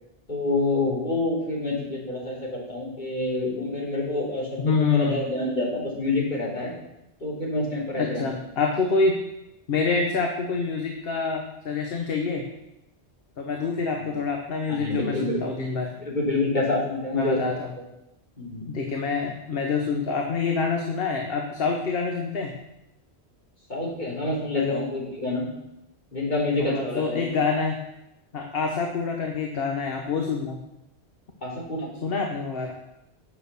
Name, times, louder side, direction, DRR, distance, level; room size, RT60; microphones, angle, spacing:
voice 1, 0.3-6.7 7.2-8.3 14.0-14.1 14.7-15.4 16.0-17.6 18.4-18.6 23.7-25.5 26.1-27.2 31.4-31.9, left 2 dB, 45° left, -5 dB, 3.5 m, -27 dB
voice 2, 4.6-5.2 7.9-9.2 9.7-12.5 13.4-15.9 17.1-17.7 18.7-22.6 24.5-24.9 26.6-27.8 28.3-30.6 32.0-32.7, left 4 dB, 60° left, 2 dB, 1.2 m, -26 dB
9.1 x 6.6 x 6.9 m, 0.89 s
omnidirectional pair, 1.1 m